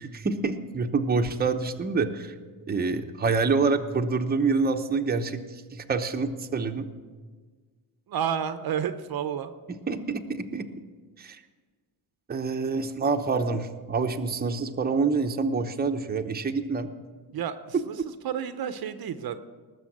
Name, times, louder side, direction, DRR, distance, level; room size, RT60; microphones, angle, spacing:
voice 1, 0.0-2.3 2.7-6.9 9.9-10.7 11.2-11.4 12.3-16.9 17.7-17.8, right 4 dB, 20° right, 4 dB, 0.9 m, -27 dB
voice 2, 8.1-9.5 17.3-18.0 18.2-19.4, right 8 dB, 60° right, 10 dB, 0.8 m, -30 dB
19.0 x 7.0 x 8.5 m, 1.5 s
cardioid pair, 130°, 41 cm